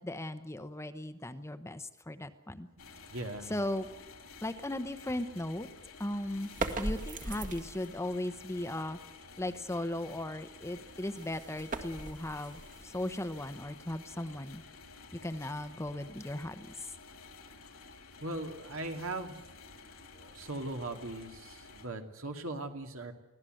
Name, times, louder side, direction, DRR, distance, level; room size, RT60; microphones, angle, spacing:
voice 1, 0.0-2.7 3.5-3.9 4.4-5.7 6.0-6.5 6.8-9.0 9.4-14.6 15.2-16.7, left 1 dB, 15° left, 9 dB, 1.0 m, -37 dB
sound 1, 2.8-21.9, left 4 dB, 80° left, 3.3 m, -52 dB
voice 2, 3.1-3.5 18.2-19.4 20.1-23.1, right 2 dB, 70° right, 4 dB, 2.6 m, -39 dB
sound 2, 6.4-8.0 10.7-13.7, right 2 dB, 40° right, 2.0 m, -40 dB
24.5 x 16.5 x 7.8 m, 1.0 s
head